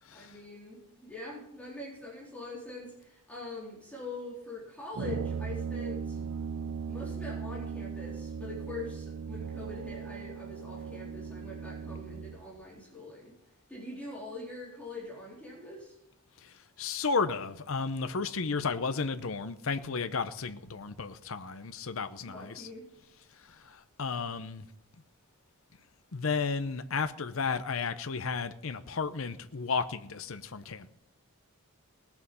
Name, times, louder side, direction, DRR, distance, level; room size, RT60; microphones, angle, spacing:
voice 1, 0.1-6.2 6.9-13.3 13.7-16.0 22.2-22.9 24.1-24.2, left 2 dB, 5° left, 3.9 m, -43 dB
Brass instrument, 4.9-12.4, right 6 dB, 70° right, 0.6 m, -38 dB
voice 2, 16.4-22.7 23.5-24.7 26.1-30.9, left 5 dB, 65° left, 0.7 m, -33 dB
18.5 x 7.1 x 5.5 m
head